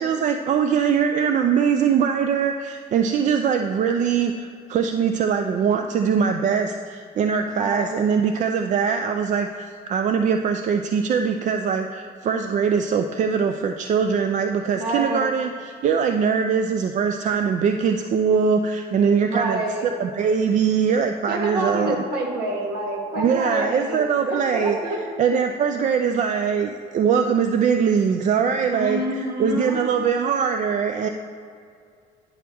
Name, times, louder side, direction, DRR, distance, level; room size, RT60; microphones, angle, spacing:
voice 1, 0.0-22.0 23.2-31.1, right 6 dB, 45° right, 6 dB, 0.4 m, -22 dB
voice 2, 7.5-7.9 14.8-15.2 19.2-19.8 21.3-25.0 28.7-29.8, right 1 dB, 65° right, 0 dB, 1.5 m, -27 dB
9.7 x 6.0 x 3.5 m, 2.3 s
cardioid pair, 110°, 17 cm